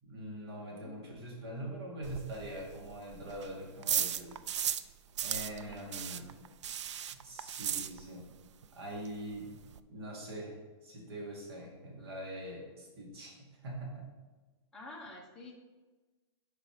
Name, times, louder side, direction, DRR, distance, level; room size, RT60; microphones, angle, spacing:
voice 1, 0.0-4.4 5.2-6.3 7.1-8.2 8.8-9.5 9.9-10.6 10.8-14.1, right 1 dB, 60° right, -2 dB, 2.1 m, -43 dB
voice 2, 0.6-1.0 5.6-6.5 14.7-15.5, left 2 dB, 5° left, -4 dB, 0.9 m, -50 dB
sound 1, 2.0-4.9 5.2-8.4 8.6-8.7 9.1-9.2 9.3-9.8, right 9 dB, 85° right, 0.4 m, -36 dB
5.9 x 4.8 x 4.8 m, 1.2 s
hypercardioid pair, 165°, 15 cm